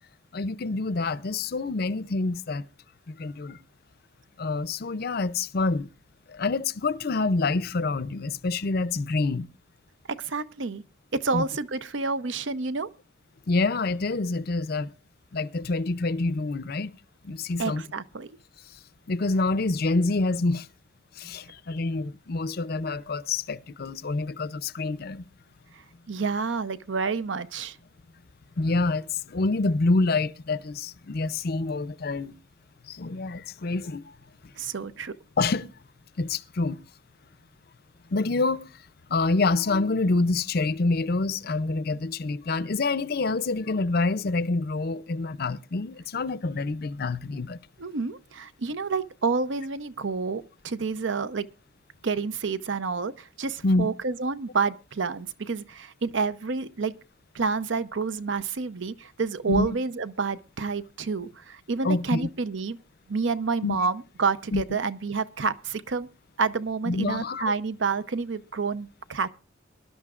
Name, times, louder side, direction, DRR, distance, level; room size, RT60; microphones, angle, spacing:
voice 1, 0.3-2.6 3.1-3.6 4.4-5.9 6.3-9.5 11.3-11.4 13.5-14.9 15.3-16.9 17.2-17.8 19.1-20.7 21.2-25.3 28.6-32.3 32.9-34.1 35.4-35.7 36.2-36.8 38.1-38.7 39.1-47.6 53.6-53.9 59.5-59.7 61.8-62.3 63.6-63.8 64.5-64.6 66.9-67.4, left 3 dB, 50° left, 0.5 m, -27 dB
voice 2, 10.2-10.8 11.1-12.9 17.6-18.3 26.1-27.8 34.6-35.1 47.8-51.5 52.0-56.9 57.3-62.8 63.1-66.1 66.4-69.3, right 4 dB, 65° right, 0.7 m, -29 dB
23.5 x 11.5 x 2.4 m
head